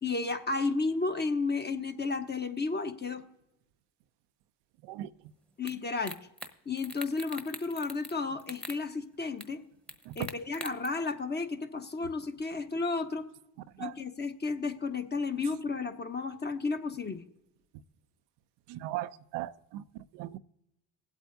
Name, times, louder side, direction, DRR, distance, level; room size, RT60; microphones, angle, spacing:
voice 1, 0.0-3.2 5.6-6.2 6.7-9.6 10.2-13.3 13.8-17.2, left 3 dB, 25° left, 7 dB, 1.1 m, -32 dB
sound 1, 5.7-5.8 6.0-6.5 6.8-8.1 8.4-8.8 9.4-9.5 9.9-10.9, equal, 5° left, 1.1 m, -42 dB
voice 2, 18.7-19.8 20.1-20.4, right 15 dB, 80° right, 12 dB, 0.6 m, -38 dB
20.0 x 8.2 x 2.6 m, 0.85 s
supercardioid pair, 80°, 41 cm